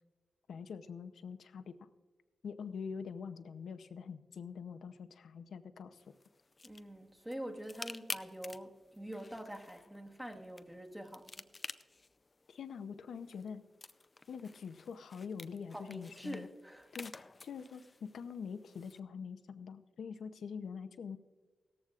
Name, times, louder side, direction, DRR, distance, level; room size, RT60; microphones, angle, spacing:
voice 1, 0.5-1.9 2.4-6.0 12.5-13.6 14.3-16.5 16.9-17.1 17.4-21.2, left 6 dB, 90° left, 9 dB, 0.6 m, -44 dB
sound 1, 6.0-19.0, left 3 dB, 35° left, 0.4 m, -51 dB
voice 2, 6.6-11.5 15.7-16.8, equal, 10° right, 2 dB, 1.2 m, -45 dB
17.5 x 14.0 x 2.4 m, 1.4 s
wide cardioid pair, 95°, 0 cm